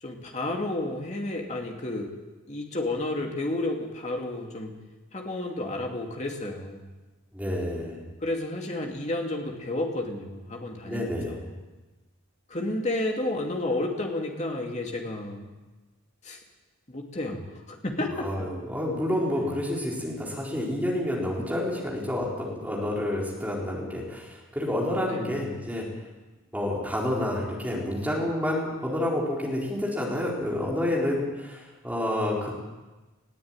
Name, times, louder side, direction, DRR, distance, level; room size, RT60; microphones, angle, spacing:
voice 1, 0.0-2.1 2.5-4.7 5.1-6.8 8.2-11.6 12.5-15.5 16.2-16.4 16.9-18.3 19.3-19.5 25.1-25.4, left 2 dB, 30° left, 1 dB, 2.6 m, -31 dB
voice 2, 7.3-8.0 10.9-11.4 18.1-25.8 26.5-32.5, left 1 dB, 5° right, -3 dB, 4.3 m, -29 dB
20.5 x 14.5 x 9.0 m, 1.2 s
head